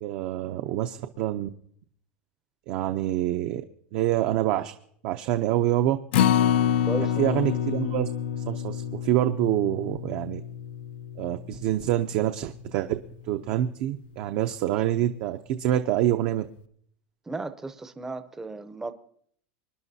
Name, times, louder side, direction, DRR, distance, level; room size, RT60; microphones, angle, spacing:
voice 1, 0.0-1.5 2.7-3.6 3.9-4.7 5.0-6.0 7.2-8.1 8.4-10.4 11.2-13.0 13.3-16.5, right 12 dB, 50° right, 0.6 m, -26 dB
Acoustic guitar, 6.1-12.4 12.8-12.9 13.3-13.4, left 9 dB, 75° left, 0.5 m, -27 dB
voice 2, 6.9-7.4 17.3-18.9, right 3 dB, 10° right, 0.6 m, -35 dB
25.5 x 11.0 x 2.7 m
supercardioid pair, 160°, 6 cm